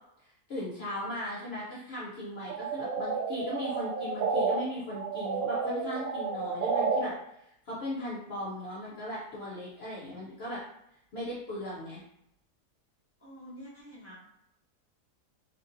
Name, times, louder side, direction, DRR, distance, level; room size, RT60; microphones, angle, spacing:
voice 1, 0.2-7.1 7.4-10.6 11.1-12.0, left 1 dB, 60° left, -6 dB, 0.6 m, -38 dB
sound 1, 2.5-4.6 4.9-7.0, right 5 dB, 70° right, 1.0 m, -31 dB
voice 2, 13.2-14.2, equal, 10° left, -8 dB, 0.8 m, -47 dB
2.8 x 2.6 x 2.5 m, 0.78 s
omnidirectional pair, 1.7 m